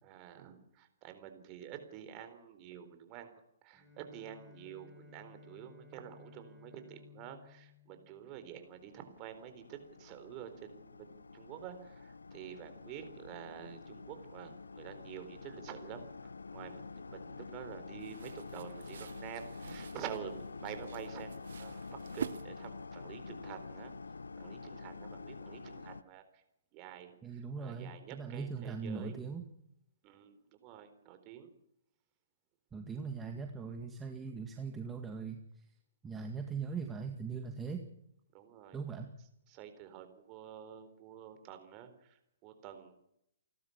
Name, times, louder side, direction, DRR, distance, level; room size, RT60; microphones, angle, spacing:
voice 1, 0.0-23.9 24.4-26.4 26.7-29.2 30.0-31.5 38.3-38.8 39.5-42.9, right 10 dB, 30° right, 8 dB, 4.1 m, -49 dB
Bowed string instrument, 3.7-9.0, left 4 dB, 5° left, 7.9 m, -58 dB
sound 1, 8.5-26.0, left 4 dB, 85° left, 0.7 m, -47 dB
sound 2, 18.0-23.0, right 7 dB, 70° right, 0.9 m, -47 dB
voice 2, 27.2-29.4 32.7-35.4 36.0-37.9 38.7-39.1, right 5 dB, 15° right, 4 dB, 2.0 m, -40 dB
29.5 x 12.5 x 7.2 m, 0.76 s
hypercardioid pair, 130°, 0 cm